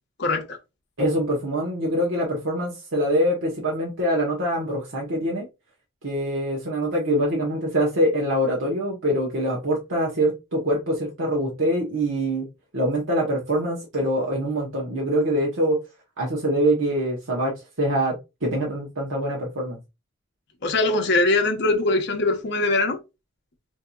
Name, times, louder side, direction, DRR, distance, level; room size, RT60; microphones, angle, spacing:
voice 1, 0.2-0.6 20.6-23.0, left 2 dB, 60° left, 0.8 m, -22 dB
voice 2, 1.0-5.5 6.0-12.5 12.7-15.8 16.2-18.2 18.4-19.8, equal, 75° right, 1.0 m, -24 dB
4.5 x 2.7 x 2.3 m
head